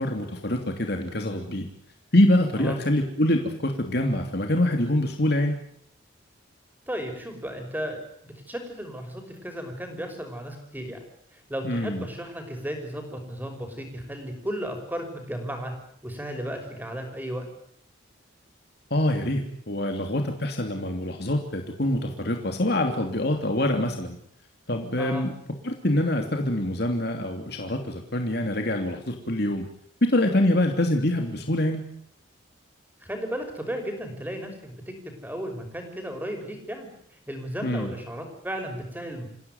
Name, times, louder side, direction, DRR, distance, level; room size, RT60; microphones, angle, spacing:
voice 1, 0.0-1.7 2.1-5.6 11.6-12.0 18.9-24.2 24.7-25.3 25.6-29.6 30.0-31.8 37.6-37.9, left 1 dB, 55° left, 3 dB, 3.0 m, -25 dB
voice 2, 6.9-11.0 11.3-15.7 16.0-17.5 25.0-25.3 33.0-34.9 35.2-36.9 37.3-39.3, equal, 10° right, 4 dB, 5.8 m, -34 dB
28.5 x 16.5 x 9.6 m, 0.67 s
head